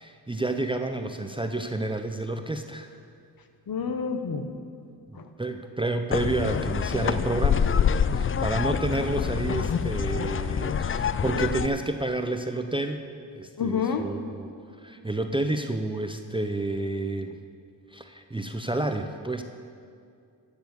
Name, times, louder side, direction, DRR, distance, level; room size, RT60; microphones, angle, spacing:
voice 1, 0.0-3.0 5.1-7.7 8.1-13.1 13.4-14.5 14.8-17.4 17.9-19.4, right 2 dB, 10° right, 6 dB, 0.6 m, -30 dB
voice 2, 3.7-4.5 5.1-5.2 13.6-14.1, left 6 dB, 50° left, 7 dB, 1.3 m, -28 dB
sound 1, 6.1-11.7, left 7 dB, 30° left, 0.4 m, -26 dB
12.5 x 7.0 x 6.9 m, 2.4 s
cardioid pair, 60°, 44 cm